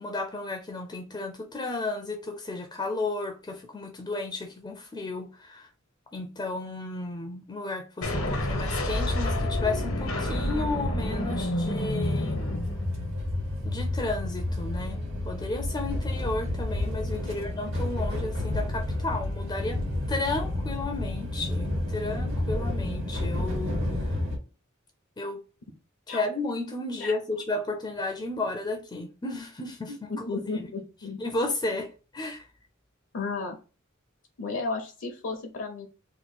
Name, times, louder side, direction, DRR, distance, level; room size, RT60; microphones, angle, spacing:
voice 1, 0.0-5.7 6.1-12.4 13.6-19.8 20.1-24.2 25.2-25.4 26.1-30.3 30.6-30.7 31.2-32.5, left 2 dB, 20° left, 0.4 m, -33 dB
sound 1, 8.0-13.2, left 1 dB, 90° left, 0.9 m, -29 dB
sound 2, 12.0-24.4, left 1 dB, 65° right, 1.4 m, -30 dB
voice 2, 29.9-31.2 33.1-33.6 34.4-35.9, left 3 dB, 65° left, 0.6 m, -33 dB
2.9 x 2.1 x 4.1 m
head